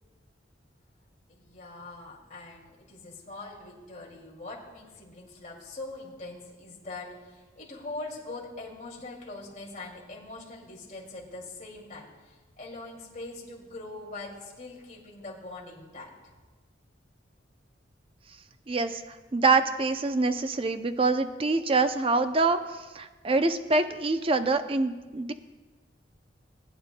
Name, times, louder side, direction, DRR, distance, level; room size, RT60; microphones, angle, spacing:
voice 1, 1.3-16.1, left 2 dB, 40° left, -3 dB, 2.5 m, -42 dB
voice 2, 18.7-19.0 19.3-25.3, right 3 dB, 30° right, 9 dB, 0.5 m, -25 dB
20.0 x 9.3 x 2.2 m, 1.3 s
head